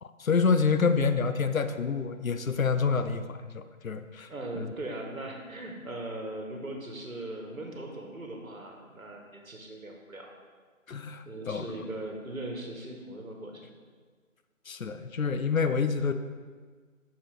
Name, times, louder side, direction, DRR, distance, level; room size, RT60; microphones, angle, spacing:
voice 1, 0.0-4.3 4.6-4.7 10.9-11.6 14.7-16.1, left 5 dB, 75° left, 10 dB, 0.6 m, -27 dB
voice 2, 4.3-10.3 11.3-13.7, right 1 dB, 75° right, 1 dB, 1.5 m, -39 dB
6.2 x 6.1 x 3.5 m, 1.5 s
figure-of-eight pair, 175°, 41 cm